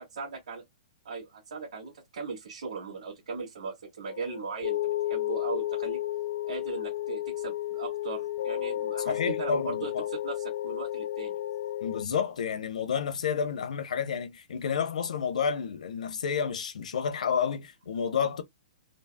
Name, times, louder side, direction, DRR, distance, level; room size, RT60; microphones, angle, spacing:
voice 1, 0.2-0.6 1.1-6.0 6.5-11.4, right 5 dB, 70° right, 1.8 m, -38 dB
sound 1, 4.1-12.0, left 13 dB, 50° left, 0.4 m, -32 dB
voice 2, 9.1-10.0 11.8-18.4, left 7 dB, 70° left, 0.8 m, -30 dB
3.9 x 2.0 x 2.2 m
hypercardioid pair, 170°, 4 cm